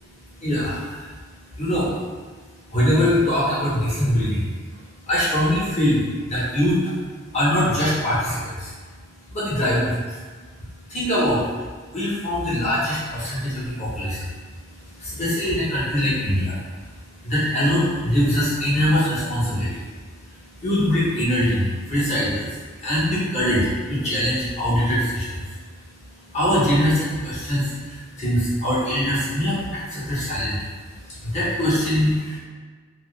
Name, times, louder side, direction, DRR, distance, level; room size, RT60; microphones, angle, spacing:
voice 1, 0.4-1.1 1.6-1.9 2.7-4.5 5.0-6.9 7.3-8.7 9.3-10.2 10.9-11.5 11.9-14.3 14.6-19.8 20.1-20.2 20.6-25.4 26.2-30.7 31.0-32.4, equal, 35° left, -9 dB, 1.1 m, -23 dB
3.2 x 2.1 x 3.2 m, 1.5 s
head